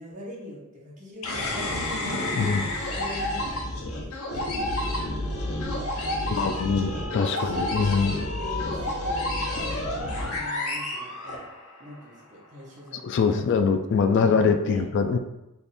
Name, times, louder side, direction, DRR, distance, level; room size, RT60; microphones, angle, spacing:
voice 1, 0.0-2.3 2.5-3.6 4.0-5.4 6.2-6.6 6.8-11.4 11.8-13.4 14.1-14.8, equal, 35° right, -4 dB, 1.0 m, -42 dB
sound 1, 1.2-11.8, left 1 dB, 80° left, 0.8 m, -30 dB
voice 2, 6.3-8.2 13.0-15.2, left 5 dB, 55° left, 7 dB, 0.3 m, -23 dB
3.4 x 2.4 x 4.2 m, 0.92 s
head